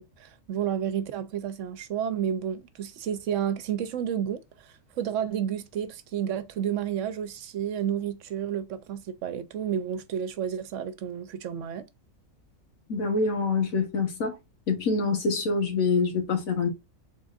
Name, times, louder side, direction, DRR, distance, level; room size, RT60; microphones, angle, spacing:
voice 1, 0.0-11.9, right 9 dB, 70° right, 0.9 m, -31 dB
voice 2, 12.9-14.4 14.7-16.7, left 4 dB, 85° left, 1.7 m, -25 dB
4.0 x 3.8 x 2.4 m
omnidirectional pair, 1.4 m